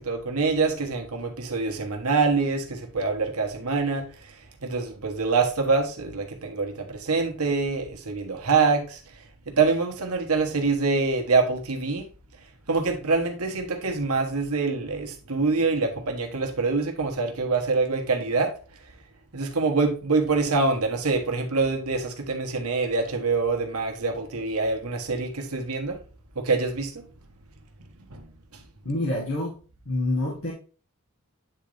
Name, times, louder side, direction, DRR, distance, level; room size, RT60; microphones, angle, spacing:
voice 1, 0.0-4.0 4.6-9.0 9.5-12.1 12.7-18.5 19.3-26.0 26.3-27.0 28.1-28.6, right 4 dB, 90° right, 1.3 m, -25 dB
voice 2, 28.8-29.6 29.8-30.5, left 1 dB, 60° left, 1.6 m, -27 dB
8.9 x 3.9 x 3.4 m
head